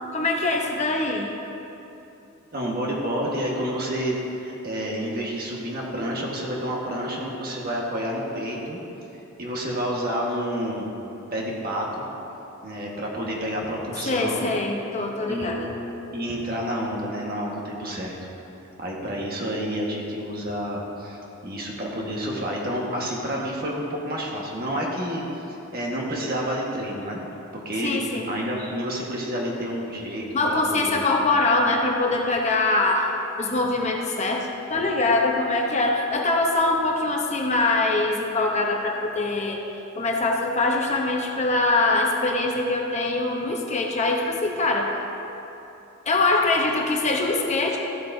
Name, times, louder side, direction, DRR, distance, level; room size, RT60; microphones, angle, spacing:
voice 1, 0.1-1.3 14.1-15.7 27.8-28.3 30.3-33.0 33.4-39.6 40.0-44.9 46.1-47.8, left 2 dB, 30° left, 0 dB, 0.7 m, -23 dB
voice 2, 2.5-4.1 4.4-8.8 9.4-10.9 11.3-12.1 12.6-14.5 15.3-15.6 16.1-18.2 18.8-27.2 27.5-31.0, equal, 45° right, -2 dB, 1.4 m, -29 dB
14.0 x 8.2 x 2.6 m, 2.9 s
head